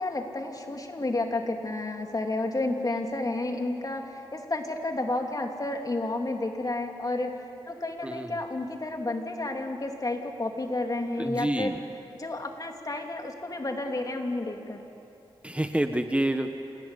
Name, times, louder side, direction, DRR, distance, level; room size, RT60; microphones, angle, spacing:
voice 1, 0.0-7.4 7.7-11.7 12.2-14.8, left 2 dB, 40° left, 3 dB, 3.0 m, -31 dB
voice 2, 8.0-8.4 11.2-11.7 15.4-16.5, right 1 dB, 10° right, 6 dB, 1.3 m, -28 dB
27.0 x 17.5 x 10.0 m, 2.9 s
cardioid pair, 65°, 10 cm